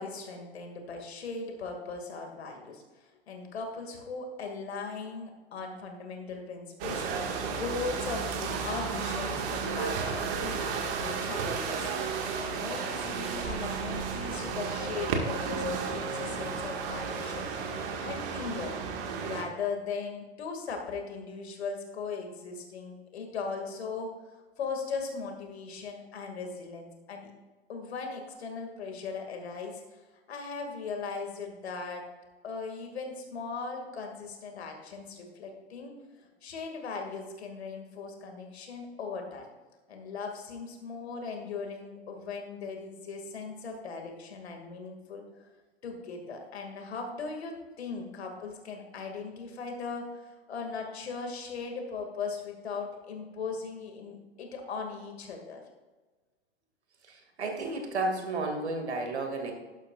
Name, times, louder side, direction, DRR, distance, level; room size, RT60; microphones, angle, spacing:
voice 1, 0.0-11.9 12.3-17.8 18.0-18.7 19.2-24.2 24.6-27.3 27.7-30.0 30.3-32.1 32.4-39.5 39.9-45.2 45.8-55.6, left 4 dB, 70° left, 3 dB, 2.4 m, -38 dB
sound 1, 6.8-19.4, right 5 dB, 55° right, 2.0 m, -33 dB
voice 2, 57.1-59.5, right 2 dB, 80° right, 3 dB, 2.4 m, -32 dB
12.0 x 11.5 x 2.5 m, 1.2 s
figure-of-eight pair, 95°, 33 cm